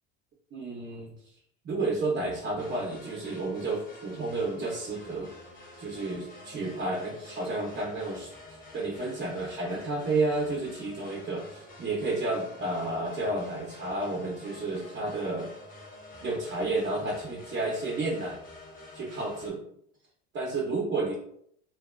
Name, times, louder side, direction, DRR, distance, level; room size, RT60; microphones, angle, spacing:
voice 1, 0.5-1.1 1.6-5.3 5.8-15.5 16.2-18.4 18.9-19.6 20.3-21.1, right 2 dB, 35° right, -2 dB, 0.8 m, -31 dB
sound 1, 2.6-19.5, left 1 dB, 30° left, 0.9 m, -48 dB
2.6 x 2.4 x 2.3 m, 0.68 s
supercardioid pair, 105°, 29 cm